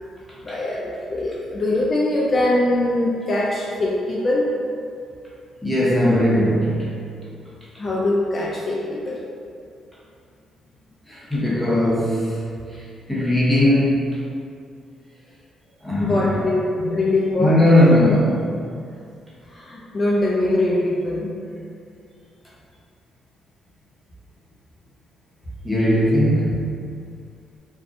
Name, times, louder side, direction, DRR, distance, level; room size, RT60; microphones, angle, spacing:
voice 1, 0.4-4.5 7.8-9.2 16.0-16.6 16.9-17.6 19.5-21.3, left 1 dB, 40° left, -5 dB, 0.3 m, -22 dB
voice 2, 5.6-6.9 11.1-12.4 12.7-12.8 13.1-14.0 15.8-16.3 16.8-17.0 17.4-18.7 21.2-21.3 25.6-26.6, left 1 dB, ahead, -8 dB, 0.8 m, -19 dB
2.6 x 2.0 x 2.5 m, 2.3 s
cardioid pair, 90°, 0 cm